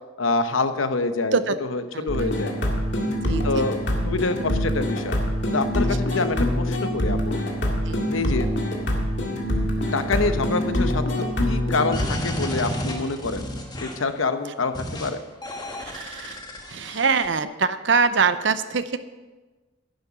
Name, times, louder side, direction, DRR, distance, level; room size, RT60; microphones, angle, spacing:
voice 1, 0.2-1.4 1.7-2.5 3.4-5.1 5.5-7.4 8.1-8.5 9.9-11.2 11.4-13.4 13.8-15.2, left 3 dB, 80° left, 9 dB, 0.9 m, -26 dB
voice 2, 1.9-2.5 3.2-3.6 7.9-8.0 15.8-16.4 16.7-19.0, right 5 dB, 60° right, 12 dB, 0.7 m, -24 dB
sound 1, 2.1-12.1, equal, 60° left, 2.1 m, -25 dB
sound 2, 11.9-14.1 14.7-15.1 15.4-17.3, equal, 20° left, 1.4 m, -31 dB
11.0 x 10.5 x 6.0 m, 1.2 s
head